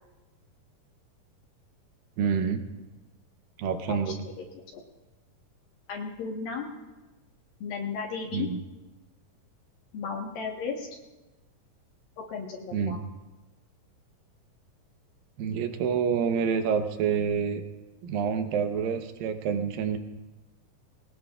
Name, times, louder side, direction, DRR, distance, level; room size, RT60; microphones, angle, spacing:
voice 1, 2.2-2.6 3.6-4.2 8.3-8.6 12.7-13.0 15.4-17.6 18.0-20.0, right 6 dB, 75° right, 7 dB, 2.6 m, -27 dB
voice 2, 4.2-4.8 5.9-6.7 7.6-8.5 9.9-10.9 12.3-13.0, left 5 dB, 70° left, -1 dB, 3.0 m, -35 dB
21.0 x 18.5 x 2.4 m, 1.1 s
omnidirectional pair, 4.3 m